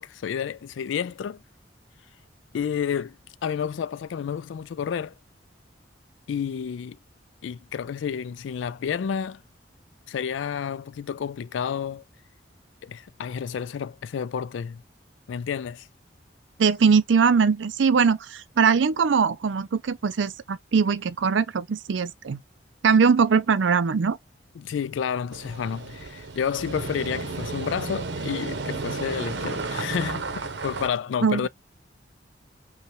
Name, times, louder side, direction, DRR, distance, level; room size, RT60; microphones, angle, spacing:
voice 1, 0.0-1.4 2.5-3.2 3.4-5.1 6.3-7.0 7.4-9.4 10.1-12.0 12.8-14.8 15.3-15.9 24.6-31.5, left 7 dB, 90° left, 0.3 m, -30 dB
voice 2, 16.6-22.4 22.8-24.2 31.2-31.4, right 5 dB, 85° right, 0.4 m, -21 dB
sound 1, 25.3-30.9, right 3 dB, 70° right, 0.8 m, -33 dB
5.4 x 2.3 x 3.0 m
head